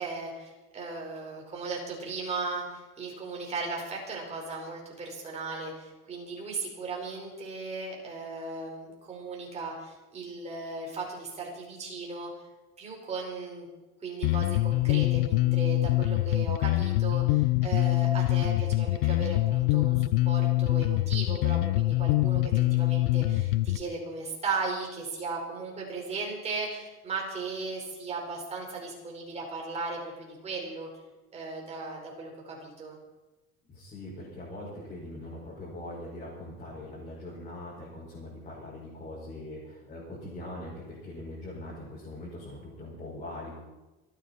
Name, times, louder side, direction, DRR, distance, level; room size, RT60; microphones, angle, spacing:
voice 1, 0.0-12.3 12.8-13.7 14.0-30.9 31.3-33.0, right 3 dB, 20° right, -2 dB, 4.8 m, -36 dB
Bass guitar, 14.2-23.8, left 18 dB, 80° left, 0.5 m, -25 dB
voice 2, 33.7-43.6, left 1 dB, 25° left, -7 dB, 5.5 m, -42 dB
29.0 x 9.9 x 4.3 m, 1.1 s
cardioid pair, 160°, 30 cm